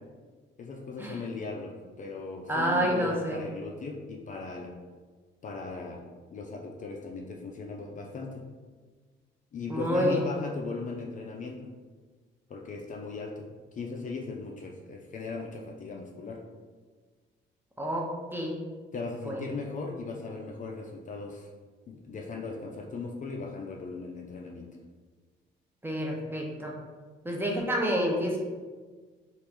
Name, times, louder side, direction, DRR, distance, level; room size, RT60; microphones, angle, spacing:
voice 1, 0.6-4.7 5.4-6.0 6.3-8.4 9.5-11.7 12.5-13.5 13.7-16.4 18.9-21.5 21.9-24.7, left 4 dB, 40° left, 1 dB, 0.4 m, -38 dB
voice 2, 2.5-3.4 9.7-10.2 17.8-18.6 19.2-19.5 25.8-26.7 27.2-28.4, equal, 10° right, -1 dB, 0.6 m, -28 dB
3.0 x 2.5 x 3.4 m, 1.4 s
cardioid pair, 90°, 20 cm